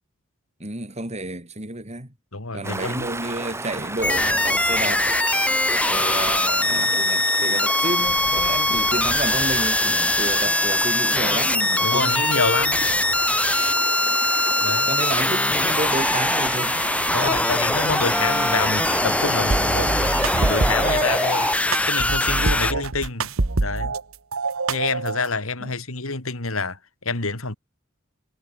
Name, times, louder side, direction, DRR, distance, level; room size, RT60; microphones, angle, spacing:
voice 1, 0.6-2.1 2.5-5.1 5.9-12.2 14.9-16.8 22.4-22.6 25.6-25.7, right 2 dB, 35° right, 4.6 m, -30 dB
voice 2, 2.3-3.1 11.8-12.9 14.6-14.9 17.1-21.5 21.8-23.3 23.6-23.9 24.7-27.6, left 4 dB, 85° left, 3.2 m, -27 dB
Stream, 2.6-21.6, right 2 dB, 15° right, 6.5 m, -33 dB
sound 1, 4.0-22.7, left 1 dB, 5° left, 3.4 m, -22 dB
sound 2, 19.5-21.0 21.7-24.0 24.3-25.3, right 3 dB, 85° right, 1.4 m, -25 dB
head